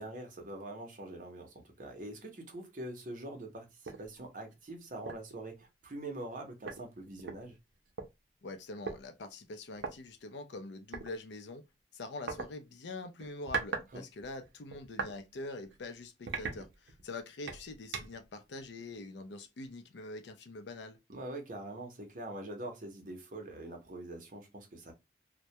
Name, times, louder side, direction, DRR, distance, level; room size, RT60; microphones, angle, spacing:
voice 1, 0.0-7.6 13.9-14.0 21.1-24.9, right 1 dB, 45° right, 0.7 m, -44 dB
sound 1, 3.8-4.1 4.5-4.6 5.1-5.3 6.3-6.4 6.7-8.1 8.9-9.0 9.8-9.9 10.9-11.1 12.3-12.5 13.2-13.9 14.2-15.2 15.6-15.8 16.3-17.1 17.5-18.3, right 5 dB, 85° right, 0.6 m, -39 dB
voice 2, 8.4-11.7 11.9-21.0, left 2 dB, 75° left, 0.5 m, -44 dB
2.2 x 2.1 x 2.6 m
head